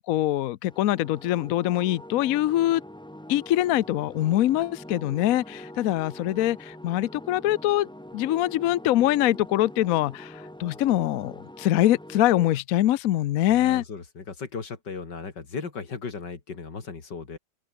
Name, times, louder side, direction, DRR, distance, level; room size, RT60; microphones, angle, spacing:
voice 1, 0.0-2.8 3.3-7.9 8.1-13.8, left 14 dB, 80° left, 0.7 m, -23 dB
sound 1, 0.7-12.6, left 1 dB, 5° left, 0.7 m, -44 dB
voice 2, 13.5-17.4, left 5 dB, 55° left, 3.4 m, -36 dB
open air
omnidirectional pair, 2.2 m